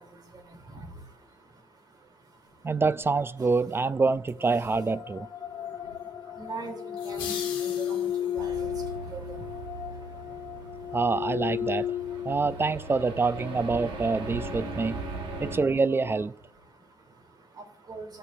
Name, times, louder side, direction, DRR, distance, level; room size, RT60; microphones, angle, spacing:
voice 1, 2.6-5.3 10.9-11.9 12.3-15.0 15.4-16.3, right 4 dB, 30° right, 0.4 m, -26 dB
sound 1, 4.4-16.3, left 10 dB, 60° left, 0.4 m, -35 dB
voice 2, 6.4-6.7 7.0-7.3 7.6-8.7 9.1-9.2 17.9-18.1, right 3 dB, 55° right, 2.8 m, -39 dB
sound 2, 7.0-8.5, left 7 dB, 85° left, 1.3 m, -39 dB
sound 3, 8.4-15.6, right 5 dB, 80° right, 1.2 m, -40 dB
17.5 x 6.6 x 2.5 m
supercardioid pair, 50°, 8 cm